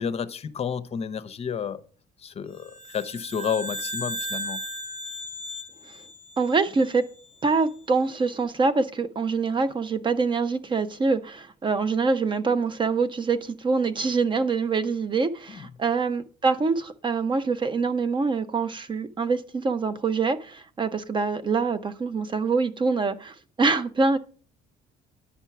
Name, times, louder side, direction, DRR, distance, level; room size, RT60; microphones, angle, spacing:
voice 1, 0.0-1.8 2.2-4.6 15.5-15.6, left 7 dB, 35° left, 0.7 m, -31 dB
sound 1, 2.6-7.2, right 1 dB, 50° right, 3.0 m, -36 dB
voice 2, 6.4-7.1 7.4-24.2, right 4 dB, 30° right, 0.6 m, -25 dB
10.0 x 4.5 x 5.8 m
cardioid pair, 110°, 17 cm